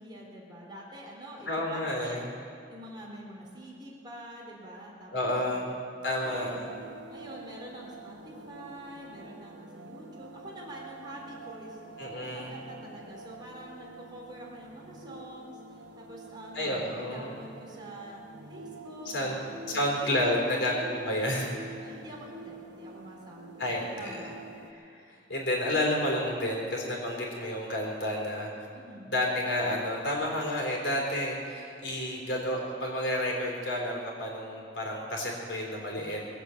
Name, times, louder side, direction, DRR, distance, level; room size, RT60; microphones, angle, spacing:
voice 1, 0.0-2.2 2.7-5.1 5.5-5.8 6.2-6.7 7.1-18.2 18.5-20.8 21.8-24.5 28.7-29.2 36.0-36.2, right 1 dB, 25° right, -3 dB, 3.8 m, -46 dB
voice 2, 1.5-2.3 5.1-5.7 6.0-6.7 12.0-12.6 16.5-17.3 19.1-19.3 19.7-21.5 23.6-24.2 24.7-28.7 29.1-36.2, left 1 dB, 90° left, -1 dB, 4.0 m, -30 dB
sound 1, 6.3-24.7, right 3 dB, 75° right, 1.1 m, -47 dB
21.5 x 8.0 x 8.3 m, 2.4 s
head